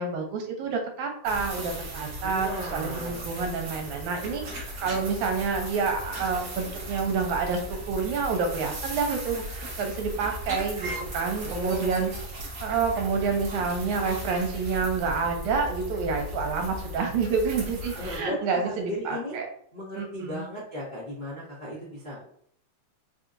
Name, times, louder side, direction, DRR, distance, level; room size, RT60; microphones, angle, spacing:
voice 1, 0.0-12.1 12.6-19.5 20.0-20.5, right 5 dB, 80° right, 3 dB, 2.0 m, -28 dB
sound 1, 1.2-18.2, equal, 60° right, 1.0 m, -37 dB
voice 2, 2.2-3.2 11.4-12.0 12.6-12.7 17.8-19.4 19.7-22.3, left 1 dB, 40° left, -10 dB, 0.6 m, -36 dB
4.8 x 2.7 x 2.5 m, 0.63 s
omnidirectional pair, 3.5 m